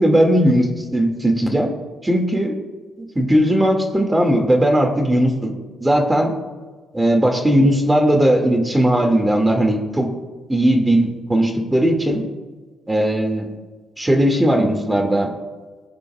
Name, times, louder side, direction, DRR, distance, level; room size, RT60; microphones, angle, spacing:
voice 1, 0.0-1.7 2.0-2.6 3.0-5.5 5.8-6.3 6.9-10.1 10.5-12.2 12.9-13.5 14.0-15.3, right 1 dB, 15° right, 3 dB, 2.1 m, -17 dB
20.0 x 8.9 x 2.4 m, 1.4 s
cardioid pair, 90°, 0 cm